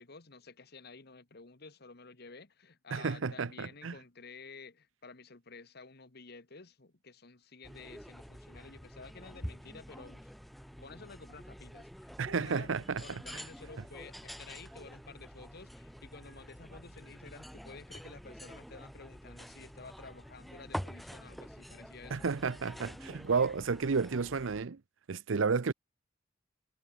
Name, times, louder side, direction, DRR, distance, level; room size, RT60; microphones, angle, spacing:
voice 1, 0.0-10.3 10.8-22.3, left 4 dB, 55° left, 1.5 m, -52 dB
voice 2, 2.9-3.9 12.2-13.2 22.1-24.8 25.1-25.7, right 5 dB, 75° right, 0.6 m, -32 dB
sound 1, 7.6-24.6, equal, ahead, 1.2 m, -47 dB
head